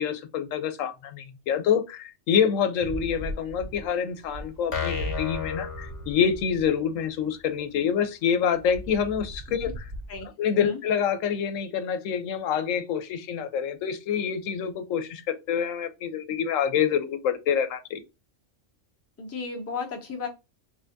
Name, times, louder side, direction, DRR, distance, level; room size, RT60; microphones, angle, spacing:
voice 1, 0.0-9.8 10.4-18.0, left 7 dB, 90° left, 1.0 m, -27 dB
sound 1, 2.8-6.7 8.5-10.2, right 1 dB, 60° right, 0.7 m, -38 dB
sound 2, 4.7-6.6, left 7 dB, 60° left, 1.0 m, -33 dB
voice 2, 10.1-10.8 19.2-20.3, left 4 dB, 15° left, 0.5 m, -35 dB
3.3 x 3.2 x 2.5 m
omnidirectional pair, 1.3 m